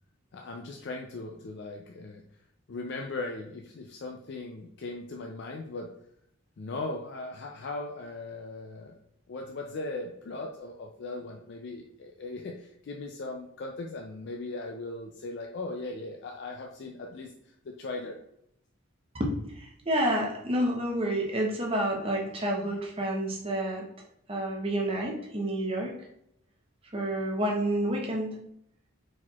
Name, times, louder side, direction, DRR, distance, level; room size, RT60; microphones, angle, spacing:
voice 1, 0.3-2.2 2.7-5.9 6.6-9.0 9.3-18.2, left 2 dB, 55° left, 1 dB, 0.4 m, -38 dB
voice 2, 19.1-23.9 24.3-25.9 26.9-28.4, right 1 dB, 25° right, 0 dB, 0.8 m, -29 dB
4.4 x 4.2 x 2.3 m, 0.76 s
head